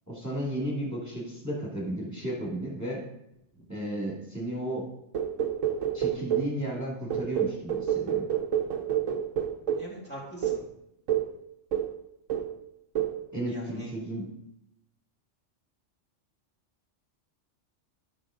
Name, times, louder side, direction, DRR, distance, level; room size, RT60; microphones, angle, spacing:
voice 1, 0.1-3.0 3.7-4.9 5.9-8.3 13.3-14.3, right 1 dB, 15° right, -4 dB, 2.2 m, -34 dB
sound 1, 5.1-6.6 7.1-9.9 10.4-10.7 11.1-11.4 11.7-12.0 12.3-12.6 13.0-13.2, right 9 dB, 80° right, 1.2 m, -28 dB
voice 2, 9.8-10.6 13.5-13.9, equal, 10° left, -5 dB, 2.2 m, -43 dB
13.0 x 6.0 x 3.7 m, 0.83 s
omnidirectional pair, 1.3 m